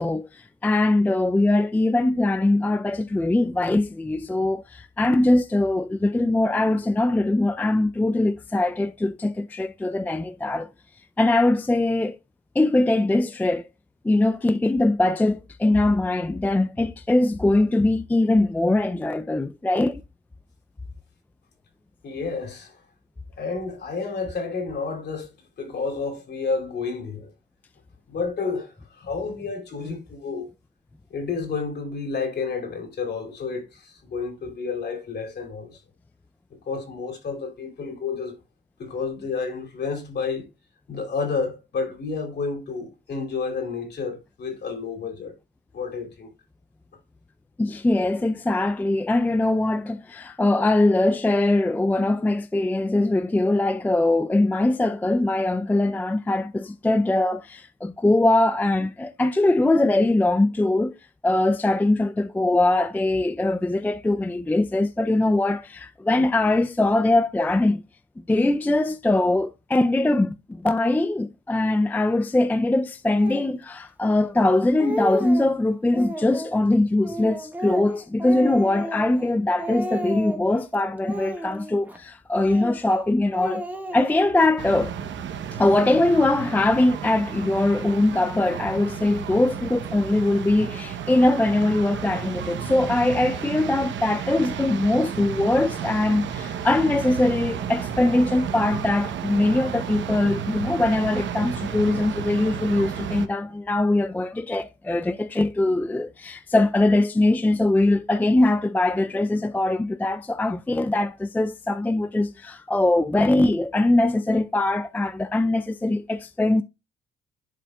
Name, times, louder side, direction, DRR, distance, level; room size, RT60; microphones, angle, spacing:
voice 1, 0.0-10.7 11.2-12.2 12.6-13.7 14.0-20.0 47.6-60.9 61.2-67.8 68.3-83.6 83.9-85.0 85.6-116.6, left 2 dB, 10° left, 0.4 m, -22 dB
voice 2, 22.0-22.8 23.4-25.3 25.6-27.3 28.1-30.5 31.1-35.8 36.6-38.4 38.8-40.5 40.9-45.3 45.7-46.3, left 4 dB, 55° left, 2.8 m, -30 dB
Speech, 73.2-73.5 74.2-74.3 74.6-75.5 75.9-76.5 77.0-79.3 79.6-80.5 81.0-82.0 82.3-83.0 83.3-84.5, right 1 dB, 10° right, 1.4 m, -33 dB
sound 1, 84.6-103.3, right 8 dB, 70° right, 0.9 m, -32 dB
10.5 x 4.9 x 2.3 m
cardioid pair, 90°, 20 cm